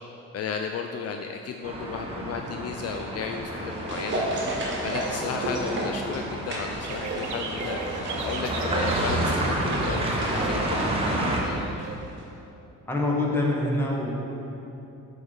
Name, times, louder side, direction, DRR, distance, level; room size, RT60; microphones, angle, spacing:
voice 1, 0.3-4.5 4.8-11.6, left 6 dB, 55° left, 4 dB, 0.4 m, -34 dB
sound 1, 1.6-11.4, right 1 dB, 20° right, 1.1 m, -30 dB
sound 2, 3.3-11.9 12.2-12.3, right 1 dB, 40° right, 1.5 m, -33 dB
sound 3, 6.8-12.0, right 5 dB, 70° right, 0.7 m, -38 dB
voice 2, 12.9-14.1, left 2 dB, 10° left, -3 dB, 1.4 m, -25 dB
8.0 x 4.0 x 5.1 m, 2.9 s
cardioid pair, 90°, 30 cm